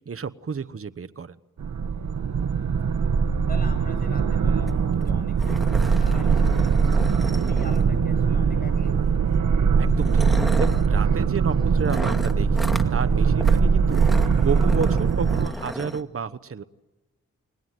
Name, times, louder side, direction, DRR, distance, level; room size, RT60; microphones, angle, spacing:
voice 1, 0.1-1.4 9.8-10.3 10.6-16.6, right 5 dB, 45° right, 11 dB, 1.1 m, -31 dB
sound 1, 1.6-15.5, right 5 dB, 75° right, 1.5 m, -21 dB
voice 2, 2.7-3.2 3.5-6.7 7.0-9.0, left 1 dB, 30° left, 9 dB, 7.9 m, -43 dB
sound 2, 4.7-4.8 5.0-5.1 5.4-8.1 9.1-9.3 9.9-10.9 11.9-12.9 13.4-13.6 13.9-16.0, equal, ahead, 2.2 m, -34 dB
30.0 x 21.0 x 9.4 m, 1.1 s
cardioid pair, 65°, 30 cm